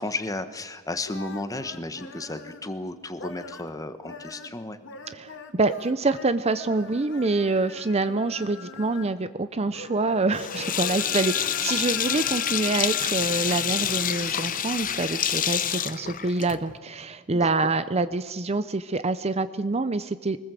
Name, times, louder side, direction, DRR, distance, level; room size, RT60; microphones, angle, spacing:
voice 1, 0.0-4.8 15.3-15.4 17.3-17.5, left 2 dB, 15° left, 10 dB, 1.2 m, -33 dB
sound 1, 0.9-2.7 3.1-3.7 4.0-9.2 9.5-14.6, left 4 dB, 55° left, 2.1 m, -42 dB
voice 2, 5.1-20.4, right 3 dB, 30° right, 12 dB, 0.6 m, -26 dB
Sink (filling or washing), 10.4-16.8, left 9 dB, 40° left, 0.9 m, -27 dB
24.0 x 20.0 x 7.6 m, 1.4 s
head